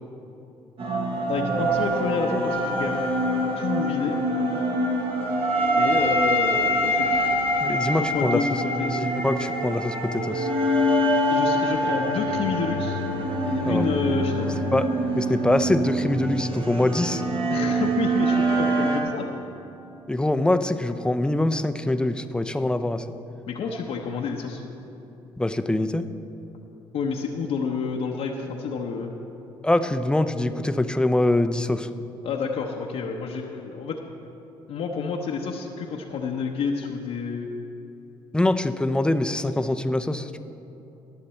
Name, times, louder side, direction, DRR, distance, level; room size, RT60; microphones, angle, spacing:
sound 1, 0.8-19.0, equal, 55° right, 1.6 m, -24 dB
voice 1, 1.3-3.0 3.6-4.2 5.7-7.2 7.7-9.1 11.3-13.0 13.4-14.6 17.5-19.3 23.5-24.6 26.9-29.1 32.2-34.0 34.7-37.5, left 5 dB, 65° left, 0 dB, 0.9 m, -29 dB
voice 2, 7.6-8.4 9.0-10.5 13.6-13.8 14.7-14.9 15.2-17.2 20.1-23.1 25.4-26.0 29.6-31.9 38.3-40.4, left 1 dB, 10° left, 10 dB, 0.6 m, -24 dB
19.0 x 6.7 x 4.3 m, 2.9 s
supercardioid pair, 65°, 11 cm